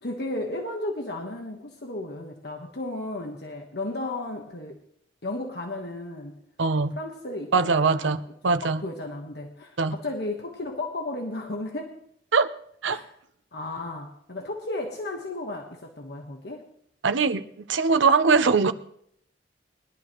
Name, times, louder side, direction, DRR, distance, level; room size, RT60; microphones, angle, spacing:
voice 1, 0.0-4.8 5.2-6.4 6.8-11.9 12.9-13.1 13.5-16.7, left 2 dB, 60° left, 2 dB, 1.3 m, -34 dB
voice 2, 6.6-6.9 7.5-8.8 9.8-10.0 12.3-12.5 12.8-13.0 17.0-17.4 17.7-18.7, right 4 dB, 90° right, 11 dB, 0.7 m, -21 dB
21.0 x 11.5 x 3.1 m, 0.69 s
head